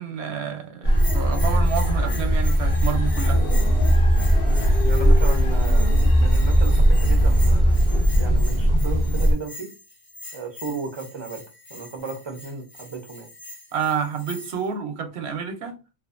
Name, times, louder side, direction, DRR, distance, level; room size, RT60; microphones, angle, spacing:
voice 1, 0.0-3.4 13.7-15.8, right 7 dB, 85° right, 0.9 m, -29 dB
sound 1, 0.8-9.3, equal, 70° left, 0.9 m, -18 dB
Bell, 0.9-14.7, left 2 dB, 15° left, 0.6 m, -42 dB
voice 2, 4.4-9.7 10.3-11.4 11.7-13.3, right 4 dB, 45° right, 0.3 m, -35 dB
2.5 x 2.3 x 2.4 m
omnidirectional pair, 1.1 m